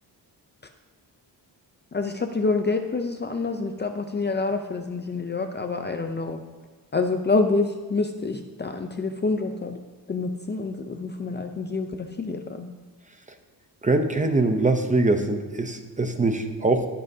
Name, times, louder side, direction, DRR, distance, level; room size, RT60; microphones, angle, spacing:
voice 1, 1.9-6.4 6.9-9.8 10.1-12.7, left 3 dB, 25° left, 5 dB, 0.5 m, -27 dB
voice 2, 13.8-16.9, right 2 dB, 20° right, 6 dB, 0.7 m, -23 dB
20.5 x 7.6 x 2.7 m, 1.3 s
wide cardioid pair, 160°, 42 cm